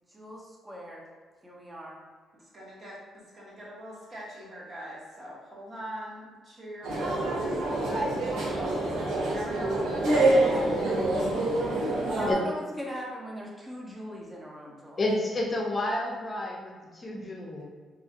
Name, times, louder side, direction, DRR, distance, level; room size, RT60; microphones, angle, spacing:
voice 1, 0.1-1.1 1.4-2.0 11.5-15.0, equal, 15° right, -3 dB, 0.7 m, -40 dB
voice 2, 2.3-7.5 7.8-10.4, equal, 45° right, -5 dB, 1.0 m, -43 dB
sound 1, 6.8-12.3, right 2 dB, 90° right, 0.7 m, -26 dB
voice 3, 15.0-17.6, left 1 dB, 30° left, -2 dB, 0.6 m, -30 dB
2.9 x 2.3 x 2.7 m, 1.5 s
cardioid pair, 90°, 0 cm